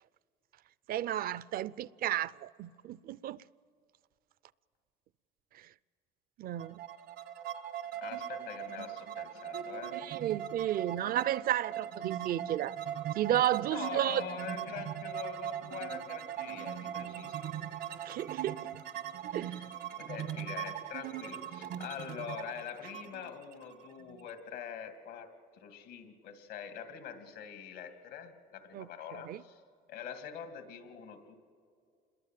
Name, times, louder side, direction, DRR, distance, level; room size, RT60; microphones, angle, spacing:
voice 1, 0.9-3.4 6.4-6.8 9.9-12.8 13.2-14.2 18.0-18.8 19.3-19.7 28.7-29.4, right 12 dB, 60° right, 0.5 m, -33 dB
sound 1, 6.6-24.3, right 10 dB, 80° right, 1.4 m, -40 dB
voice 2, 8.0-10.0 13.7-17.4 20.0-29.6 29.9-31.4, left 8 dB, 90° left, 2.5 m, -44 dB
27.5 x 21.5 x 7.5 m
cardioid pair, 110°, 17 cm